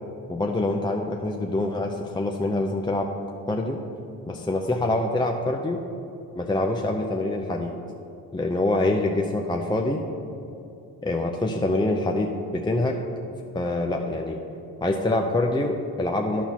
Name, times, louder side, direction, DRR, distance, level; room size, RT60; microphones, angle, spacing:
voice 1, 0.3-3.1 3.5-3.8 4.3-5.8 6.3-7.7 8.3-10.0 11.0-13.0 13.5-14.4 14.8-16.4, left 2 dB, 10° left, 1 dB, 0.6 m, -25 dB
11.5 x 4.4 x 5.8 m, 2.7 s
cardioid pair, 85°, 36 cm